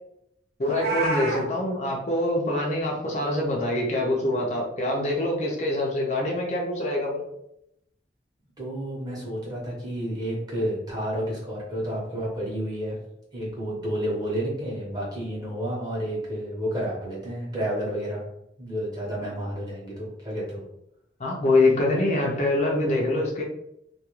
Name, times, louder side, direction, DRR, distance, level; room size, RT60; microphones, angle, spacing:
voice 1, 0.6-7.2 21.2-23.4, left 2 dB, 40° left, -2 dB, 0.4 m, -24 dB
Meow, 0.6-1.4, right 2 dB, 60° right, 0.7 m, -28 dB
voice 2, 8.6-13.0 13.3-18.2 18.6-20.6, equal, 20° right, -5 dB, 0.8 m, -30 dB
2.3 x 2.2 x 2.9 m, 0.80 s
head